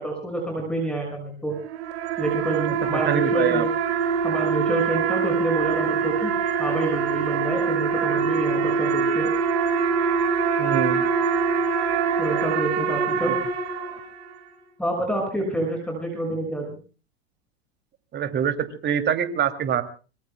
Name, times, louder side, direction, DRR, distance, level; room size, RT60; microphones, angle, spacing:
voice 1, 0.0-1.5 2.2-3.7 4.2-9.3 12.2-13.3 14.8-16.8, right 2 dB, 5° left, 1 dB, 6.4 m, -28 dB
sound 1, 1.5-14.3, right 6 dB, 65° right, 7.0 m, -24 dB
voice 2, 2.7-3.7 10.6-11.1 13.2-13.4 18.1-19.8, right 8 dB, 30° right, 9 dB, 2.7 m, -25 dB
25.0 x 24.0 x 2.3 m, 0.36 s
hypercardioid pair, 105°, 34 cm